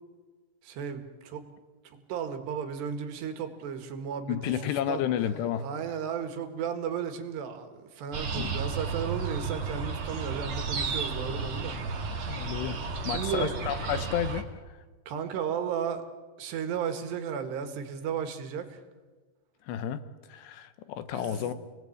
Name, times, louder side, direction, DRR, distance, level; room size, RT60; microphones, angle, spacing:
voice 1, 0.6-1.5 1.9-5.0 5.6-12.1 13.0-13.5 15.1-16.1 16.4-18.8 21.1-21.5, right 7 dB, 85° right, 7 dB, 4.0 m, -34 dB
voice 2, 4.3-5.7 8.3-8.6 12.2-14.5 19.7-20.0 20.3-21.5, left 10 dB, 90° left, 12 dB, 3.3 m, -31 dB
sound 1, 8.1-14.4, right 4 dB, 40° right, 2.2 m, -33 dB
28.5 x 19.5 x 8.5 m, 1.4 s
omnidirectional pair, 4.7 m